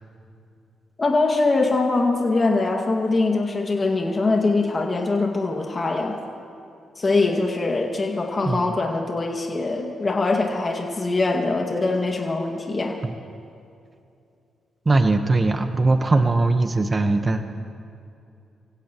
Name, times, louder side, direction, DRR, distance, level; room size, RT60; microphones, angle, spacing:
voice 1, 1.0-6.2 7.0-13.0, left 3 dB, 35° left, 1 dB, 2.1 m, -22 dB
voice 2, 14.8-17.4, right 2 dB, 35° right, 7 dB, 1.2 m, -20 dB
27.5 x 16.0 x 3.1 m, 2.6 s
supercardioid pair, 55°, 0 cm